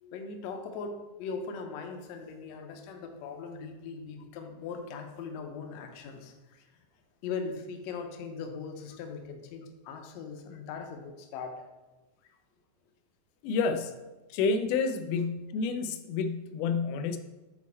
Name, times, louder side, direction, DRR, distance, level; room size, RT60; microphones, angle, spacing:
voice 1, 0.1-6.7 7.2-11.6 12.2-12.3, left 5 dB, 75° left, 4 dB, 1.7 m, -40 dB
voice 2, 13.4-14.0 14.3-17.2, left 4 dB, 90° left, 8 dB, 2.1 m, -29 dB
8.2 x 4.2 x 4.2 m, 1.1 s
omnidirectional pair, 3.6 m